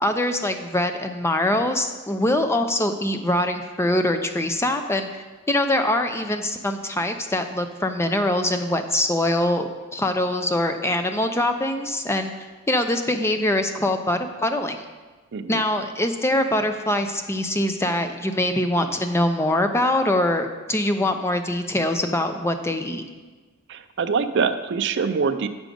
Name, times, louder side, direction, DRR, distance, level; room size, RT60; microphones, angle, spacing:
voice 1, 0.0-5.1 5.5-12.3 12.7-14.8 15.5-23.0, left 1 dB, 10° left, 7 dB, 0.5 m, -23 dB
voice 2, 15.3-15.6 23.7-25.5, right 5 dB, 55° right, 9 dB, 0.5 m, -24 dB
8.1 x 6.2 x 5.2 m, 1.3 s
head